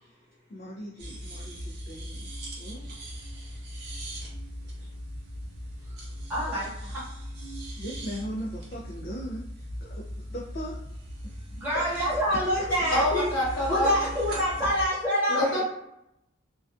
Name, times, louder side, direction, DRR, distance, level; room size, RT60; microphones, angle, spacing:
voice 1, 0.5-2.9 7.8-10.8 11.7-13.0 13.6-13.8 15.3-15.7, equal, 45° left, -3 dB, 0.3 m, -39 dB
sound 1, 1.0-14.9, equal, 50° right, 0.6 m, -39 dB
voice 2, 6.3-7.0 11.5-13.2 13.7-15.5, equal, 10° right, -9 dB, 1.1 m, -26 dB
voice 3, 12.9-13.9 15.3-15.7, left 1 dB, 70° left, -6 dB, 1.2 m, -26 dB
2.3 x 2.3 x 2.5 m, 0.82 s
head